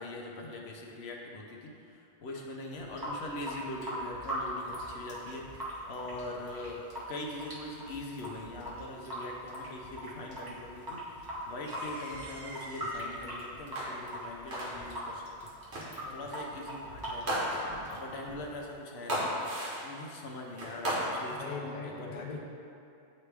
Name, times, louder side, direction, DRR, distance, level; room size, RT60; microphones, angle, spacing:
voice 1, 0.0-15.3 15.6-15.8 16.1-17.3 17.8-19.3 19.8-22.3, left 2 dB, 65° left, -1 dB, 0.9 m, -42 dB
Water tap faucet / Sink (filling or washing) / Drip, 2.7-18.7, equal, 20° right, 1.0 m, -41 dB
sound 1, 11.6-13.1 13.7-14.2 14.5-15.0 15.7-16.1 17.3-18.0 19.1-20.0 20.6-21.4, equal, 65° right, 1.2 m, -35 dB
voice 2, 15.7-16.3 17.8-18.2 21.3-22.5, left 4 dB, 50° left, 0 dB, 0.6 m, -43 dB
9.1 x 3.1 x 3.3 m, 2.6 s
omnidirectional pair, 1.2 m